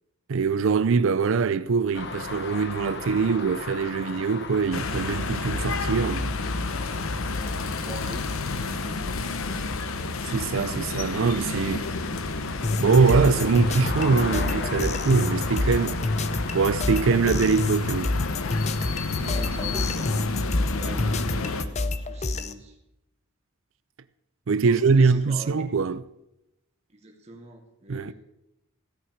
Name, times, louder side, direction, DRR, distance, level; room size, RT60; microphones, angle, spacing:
voice 1, 0.3-6.3 10.3-11.9 12.8-16.0 16.5-18.2 24.5-26.0 27.9-28.1, right 5 dB, 65° right, 0.4 m, -23 dB
sound 1, 1.9-20.0, left 3 dB, 50° left, 1.2 m, -38 dB
sound 2, 4.7-21.6, left 3 dB, 75° left, 0.9 m, -31 dB
voice 2, 7.3-9.3 19.2-20.3 20.7-22.8 24.6-25.6 26.9-28.1, right 1 dB, 30° right, 2.1 m, -43 dB
sound 3, 12.6-22.5, left 2 dB, 30° left, 0.6 m, -28 dB
16.0 x 5.7 x 9.4 m
head